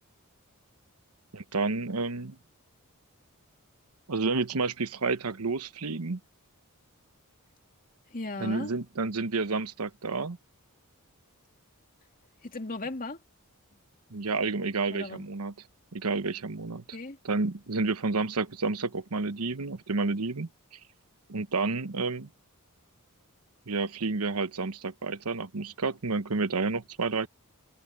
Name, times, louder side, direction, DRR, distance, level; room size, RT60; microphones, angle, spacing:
voice 1, 1.3-2.4 4.1-6.2 8.4-10.4 14.1-15.5 15.9-16.8 17.2-20.5 21.3-22.3 23.7-27.3, right 3 dB, 85° right, 1.1 m, -30 dB
voice 2, 8.1-8.7 12.4-13.2 14.9-15.3 16.9-17.2, left 2 dB, 40° left, 2.5 m, -37 dB
head